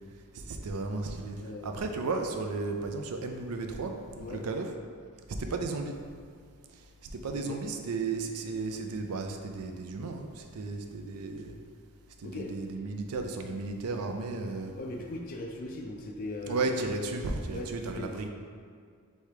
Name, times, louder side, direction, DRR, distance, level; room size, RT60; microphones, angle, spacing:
voice 1, 0.3-4.7 5.4-6.0 6.8-11.5 12.2-14.7 16.5-18.3, right 3 dB, 80° right, 4 dB, 0.4 m, -34 dB
voice 2, 1.4-1.8 4.2-4.4 7.5-7.6 12.2-12.5 14.8-16.7 17.5-17.7 18.0-18.1, left 2 dB, 40° left, 1 dB, 0.4 m, -39 dB
3.3 x 3.2 x 4.8 m, 2.1 s
head